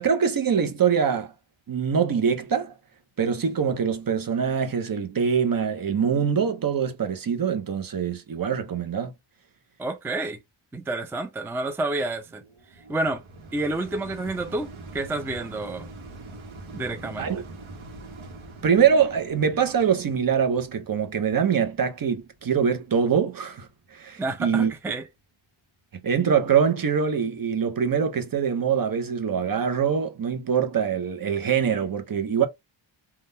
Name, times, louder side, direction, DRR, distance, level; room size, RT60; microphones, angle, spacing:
voice 1, 0.0-1.3 1.7-2.7 3.2-9.1 17.2-17.4 18.6-24.7 26.0-32.5, right 7 dB, 45° right, 0.6 m, -24 dB
voice 2, 9.8-10.4 10.7-12.4 12.9-13.2 13.5-15.9 16.7-17.3 24.2-25.0, right 2 dB, 5° right, 0.4 m, -29 dB
sound 1, 12.0-23.3 23.9-24.0, right 2 dB, 75° right, 1.0 m, -44 dB
3.6 x 2.2 x 2.6 m
wide cardioid pair, 135°, 48 cm